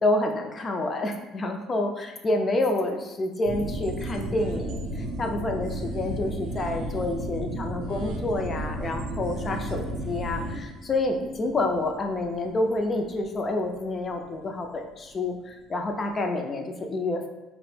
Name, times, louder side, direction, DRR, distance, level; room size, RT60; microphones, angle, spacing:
voice 1, 0.0-17.3, left 2 dB, 30° left, 4 dB, 0.4 m, -28 dB
sound 1, 3.4-14.3 14.6-14.7, right 1 dB, 90° right, 0.4 m, -34 dB
2.8 x 2.0 x 3.1 m, 1.0 s
cardioid pair, 115°, 0 cm